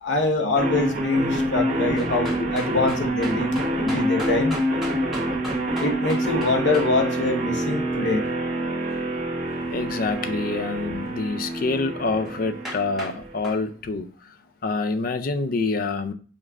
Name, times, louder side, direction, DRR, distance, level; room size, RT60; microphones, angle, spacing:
voice 1, 0.0-4.6 5.8-8.2, left 2 dB, 85° left, 0.9 m, -24 dB
sound 1, 0.6-13.5, right 1 dB, 45° right, 1.4 m, -27 dB
sound 2, 2.0-6.9 12.3-12.4 12.6-13.2 13.4-13.6, equal, ahead, 1.1 m, -37 dB
voice 2, 9.7-14.1 14.6-16.1, left 3 dB, 50° left, 0.4 m, -26 dB
5.2 x 2.5 x 3.4 m
head